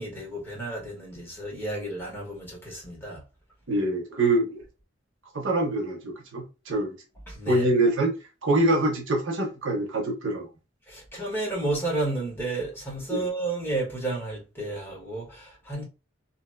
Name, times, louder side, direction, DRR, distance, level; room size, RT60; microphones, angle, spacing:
voice 1, 0.0-3.2 7.3-7.6 10.9-15.8, right 2 dB, 10° left, 1.3 m, -32 dB
voice 2, 3.7-4.6 5.3-6.9 7.5-8.1 8.4-10.5 13.1-13.3, right 2 dB, 90° right, 0.9 m, -25 dB
2.8 x 2.7 x 2.2 m
head